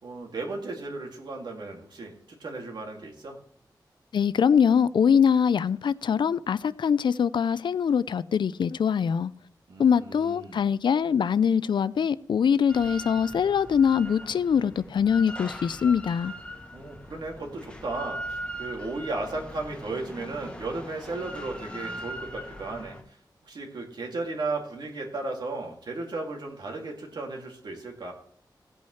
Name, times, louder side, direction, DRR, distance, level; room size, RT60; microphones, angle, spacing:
voice 1, 0.0-3.4 9.7-10.6 16.7-23.2 23.4-28.1, right 3 dB, 70° right, 2.4 m, -35 dB
voice 2, 4.1-9.3 9.8-16.3, left 7 dB, 90° left, 0.4 m, -23 dB
Drill, 12.7-23.0, equal, 15° left, 1.0 m, -40 dB
16.0 x 8.5 x 3.2 m
wide cardioid pair, 145°, 8 cm